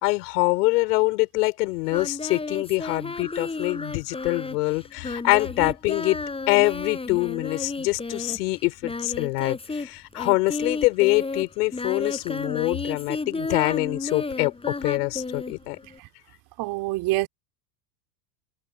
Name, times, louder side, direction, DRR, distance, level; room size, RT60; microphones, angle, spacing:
voice 1, 0.0-6.2 6.5-15.8, left 23 dB, 70° left, 5.2 m, -24 dB
Singing, 1.9-9.9 10.1-16.0, left 3 dB, 10° left, 4.3 m, -32 dB
voice 2, 16.6-17.3, right 19 dB, 50° right, 3.5 m, -26 dB
hypercardioid pair, 115°, 50 cm